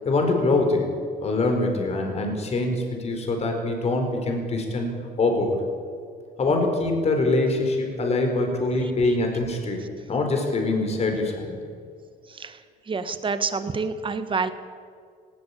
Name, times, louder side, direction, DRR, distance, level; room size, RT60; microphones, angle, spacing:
voice 1, 0.0-0.9 1.2-4.9 5.2-5.6 6.4-11.6, left 2 dB, 40° left, 3 dB, 4.7 m, -24 dB
voice 2, 12.3-12.6 12.9-14.5, right 4 dB, 30° right, 11 dB, 1.6 m, -27 dB
19.0 x 18.0 x 8.6 m, 2.1 s
cardioid pair, 110°, 17 cm